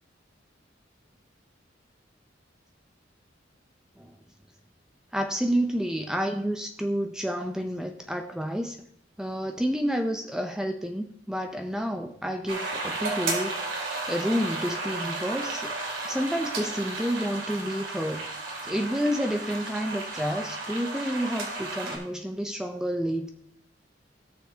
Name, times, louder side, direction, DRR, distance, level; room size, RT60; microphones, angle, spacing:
voice 1, 5.1-8.8 9.2-15.8 16.0-18.2 18.6-23.3, equal, 5° right, 4 dB, 0.5 m, -29 dB
sound 1, 12.5-22.0, right 3 dB, 75° right, 2.7 m, -33 dB
17.5 x 6.9 x 2.8 m, 0.68 s
head